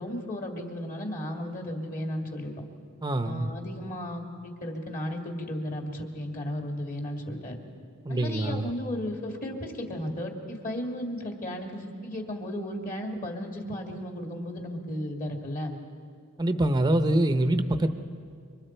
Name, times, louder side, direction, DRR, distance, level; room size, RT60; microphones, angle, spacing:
voice 1, 0.0-2.5 3.2-7.6 8.1-15.8, left 1 dB, 40° left, 2 dB, 2.2 m, -34 dB
voice 2, 3.0-3.5 8.0-8.7 16.4-17.9, right 1 dB, 20° right, 9 dB, 0.7 m, -25 dB
27.0 x 24.5 x 4.5 m, 2.2 s
head